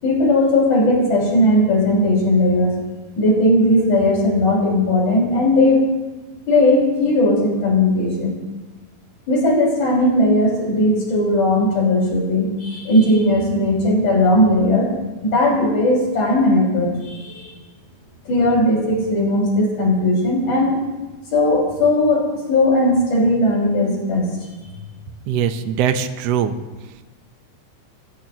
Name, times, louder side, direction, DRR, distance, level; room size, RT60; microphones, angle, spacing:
voice 1, 0.0-2.7 3.2-5.9 6.5-8.3 9.3-14.9 15.2-17.5 18.3-20.8 21.3-24.3, left 1 dB, 65° left, -4 dB, 7.1 m, -17 dB
voice 2, 25.3-26.6, right 8 dB, 65° right, 8 dB, 1.8 m, -21 dB
29.0 x 15.5 x 3.1 m, 1.2 s
omnidirectional pair, 3.6 m